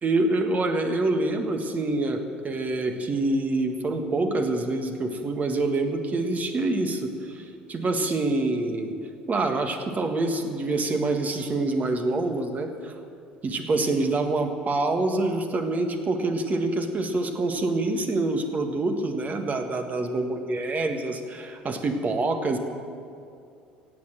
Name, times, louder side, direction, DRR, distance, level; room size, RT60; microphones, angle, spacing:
voice 1, 0.0-8.9 9.3-12.9 13.4-22.6, right 2 dB, 35° right, 5 dB, 1.7 m, -26 dB
16.5 x 8.8 x 7.6 m, 2.4 s
figure-of-eight pair, 60°, 5 cm